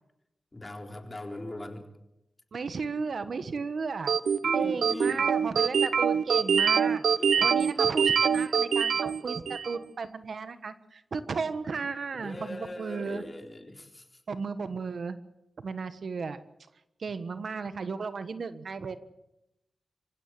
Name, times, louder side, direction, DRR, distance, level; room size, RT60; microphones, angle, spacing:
voice 1, 0.5-1.9 4.4-5.3 7.2-7.6 12.1-14.2, left 1 dB, 30° left, 3 dB, 3.9 m, -40 dB
voice 2, 2.5-4.1 4.5-7.0 7.4-13.2 14.3-15.2 15.6-16.4 17.0-19.0, right 4 dB, 70° right, 11 dB, 1.3 m, -34 dB
sound 1, 4.1-9.8, right 6 dB, 85° right, 0.7 m, -24 dB
25.5 x 16.5 x 7.5 m, 0.87 s
cardioid pair, 55°, 0 cm